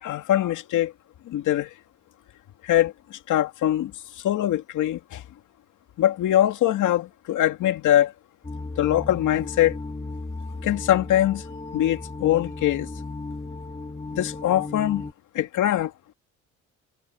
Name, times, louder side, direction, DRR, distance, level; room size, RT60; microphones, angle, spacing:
voice 1, 0.0-0.9 1.3-1.7 2.6-3.9 4.2-5.2 6.0-8.1 8.8-9.8 10.6-11.4 11.7-12.9 14.1-15.1 15.3-15.9, left 12 dB, 80° left, 2.5 m, -22 dB
sound 1, 8.4-15.1, left 3 dB, 20° left, 3.0 m, -35 dB
cardioid pair, 90°, 30 cm